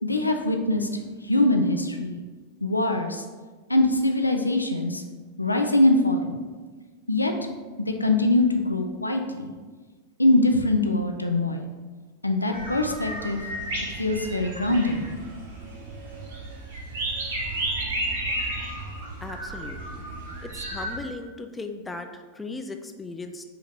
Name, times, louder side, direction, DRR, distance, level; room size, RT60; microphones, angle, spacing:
voice 1, 0.0-0.9 1.2-2.2 2.6-3.2 3.7-5.0 5.4-6.4 7.1-7.3 7.8-9.5 10.2-11.6 12.2-13.4 14.0-15.0, left 2 dB, 85° left, 5 dB, 0.4 m, -23 dB
sound 1, 12.5-21.0, right 1 dB, 55° right, 0.8 m, -33 dB
voice 2, 19.2-20.0 20.4-23.4, left 3 dB, 10° left, 6 dB, 0.3 m, -37 dB
4.8 x 2.9 x 3.5 m, 1.4 s
figure-of-eight pair, 90°, 0 cm